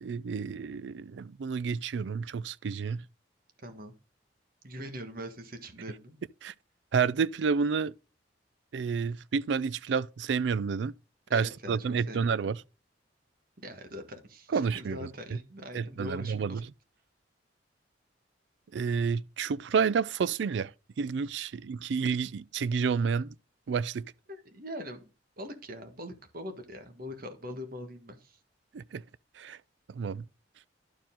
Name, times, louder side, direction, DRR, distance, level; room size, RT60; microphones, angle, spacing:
voice 1, 0.0-3.0 6.4-6.5 6.9-7.9 8.7-10.9 11.3-12.6 14.5-15.1 15.7-16.6 18.7-20.7 21.0-23.3 23.7-24.0 28.7-29.0 29.4-29.6 29.9-30.2, right 5 dB, 70° right, 0.4 m, -30 dB
voice 2, 3.6-3.9 4.6-6.2 11.3-12.6 13.6-16.6 24.3-28.4, equal, 50° right, 1.5 m, -42 dB
11.5 x 4.6 x 3.7 m
head